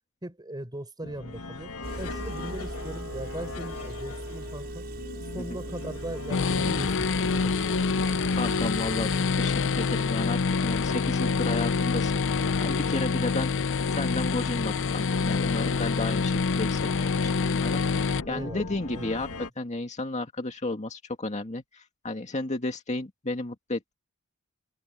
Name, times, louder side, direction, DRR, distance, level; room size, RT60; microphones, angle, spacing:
voice 1, 0.2-1.7 2.0-4.9 5.3-8.2 18.2-19.2, right 1 dB, 20° right, 5.5 m, -39 dB
sound 1, 1.0-19.5, left 3 dB, 75° left, 1.9 m, -40 dB
Engine, 1.8-9.2, right 1 dB, 45° right, 5.0 m, -38 dB
sound 2, 6.3-18.2, left 4 dB, 60° left, 0.6 m, -26 dB
voice 2, 8.4-13.5 14.0-16.9 17.2-17.8 18.3-19.3 19.6-23.9, left 2 dB, 30° left, 2.0 m, -33 dB
open air
head